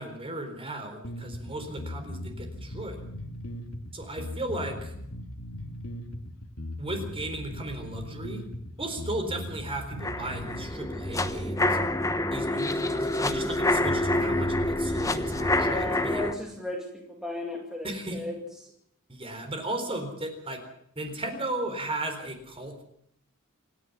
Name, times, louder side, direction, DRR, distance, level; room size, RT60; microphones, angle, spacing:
voice 1, 0.0-3.0 3.9-4.9 6.8-8.4 8.8-11.8 12.3-16.3 17.8-18.2 19.1-20.6 21.0-22.8, right 1 dB, 25° right, 6 dB, 4.2 m, -36 dB
sound 1, 1.0-10.6, left 1 dB, 75° left, 2.7 m, -38 dB
sound 2, 10.0-16.3, left 1 dB, 15° left, 1.2 m, -27 dB
voice 2, 15.4-18.4, left 1 dB, 5° right, 0 dB, 2.3 m, -35 dB
27.5 x 10.5 x 9.6 m, 0.72 s
head